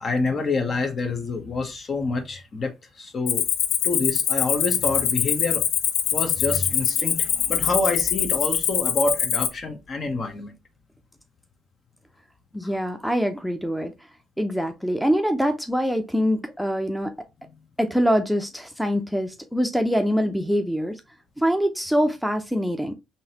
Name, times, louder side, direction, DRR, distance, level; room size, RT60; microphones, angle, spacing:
voice 1, 0.0-3.4 3.8-5.7 6.1-10.5, left 3 dB, 45° left, 0.9 m, -27 dB
Cricket, 3.3-9.5, left 9 dB, 75° left, 0.4 m, -23 dB
voice 2, 12.5-13.9 14.4-17.1 17.8-20.9 21.4-23.0, equal, ahead, 0.6 m, -24 dB
3.9 x 2.7 x 2.9 m
supercardioid pair, 60°, 0 cm